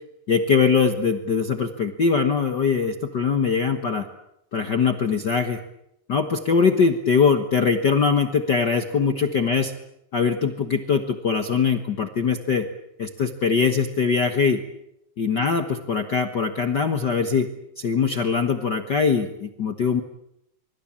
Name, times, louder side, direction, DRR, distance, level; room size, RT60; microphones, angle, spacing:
voice 1, 0.3-4.1 4.5-5.6 6.1-9.7 10.1-12.7 13.0-14.6 15.2-17.5 17.8-20.0, left 5 dB, 85° left, 8 dB, 0.9 m, -22 dB
25.0 x 23.5 x 8.7 m, 0.82 s
omnidirectional pair, 4.2 m